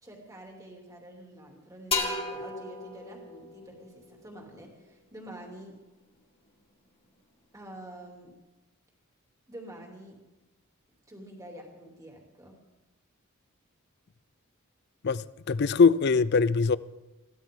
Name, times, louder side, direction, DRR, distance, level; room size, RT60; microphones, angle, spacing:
voice 1, 0.0-5.8 7.5-8.3 9.5-10.2 11.1-12.6, right 1 dB, 15° right, 2.8 m, -47 dB
sound 1, 1.9-5.5, left 3 dB, 25° left, 2.0 m, -36 dB
voice 2, 15.0-16.8, left 5 dB, 50° left, 0.4 m, -22 dB
22.0 x 16.0 x 3.8 m
head